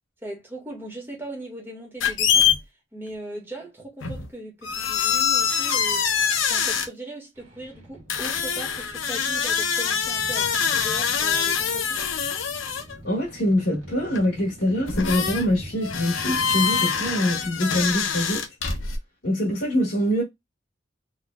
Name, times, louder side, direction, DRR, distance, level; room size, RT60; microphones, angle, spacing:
voice 1, 0.2-2.5 2.9-12.0, right 1 dB, 10° right, 1.6 m, -39 dB
sound 1, 2.0-2.6 4.0-4.3 4.6-6.9 8.1-13.0 14.1-14.2 14.9-15.5 15.8-19.0, left 7 dB, 90° left, 0.8 m, -24 dB
sound 2, 7.4-17.5, right 1 dB, 90° right, 1.5 m, -43 dB
voice 2, 13.0-18.4 19.2-20.2, equal, 70° left, 1.7 m, -24 dB
4.0 x 3.2 x 2.2 m
head